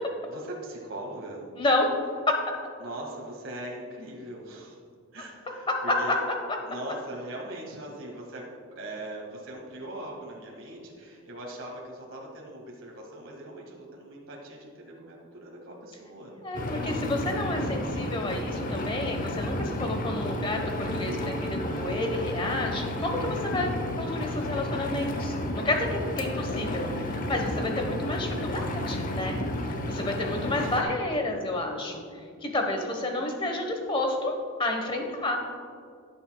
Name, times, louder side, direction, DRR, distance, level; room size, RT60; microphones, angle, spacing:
voice 1, 0.2-1.5 2.8-4.8 5.1-6.2 6.6-16.3 29.7-30.9 32.1-32.6, right 1 dB, 60° right, -2 dB, 1.8 m, -41 dB
voice 2, 1.5-1.9 2.3-2.4 6.1-6.2 16.4-29.4 29.9-35.4, left 2 dB, 20° left, 3 dB, 1.1 m, -30 dB
Engine, 16.5-30.8, left 1 dB, 40° left, 0.7 m, -32 dB
Wind instrument woodwind instrument, 19.6-24.1, right 3 dB, ahead, 0.5 m, -44 dB
15.5 x 7.0 x 2.3 m, 2.3 s
head